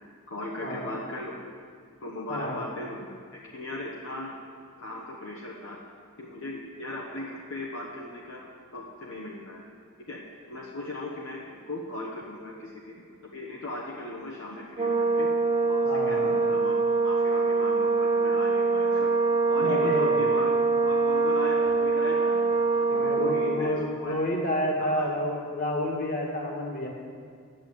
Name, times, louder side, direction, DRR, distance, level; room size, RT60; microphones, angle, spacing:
voice 1, 0.3-1.4 2.0-4.3 4.8-5.8 6.2-8.4 8.7-9.6 10.1-10.2 10.5-15.3 15.7-16.8 17.0-19.1 19.5-22.4 22.8-23.7 24.0-24.2 24.8-25.1, left 2 dB, 60° left, -3 dB, 1.1 m, -38 dB
Brass instrument, 14.8-23.7, right 4 dB, 25° right, 0.8 m, -24 dB
voice 2, 15.8-16.3 19.6-20.3 22.9-26.9, left 1 dB, 40° left, 0 dB, 1.9 m, -29 dB
10.5 x 8.9 x 7.7 m, 2.1 s
head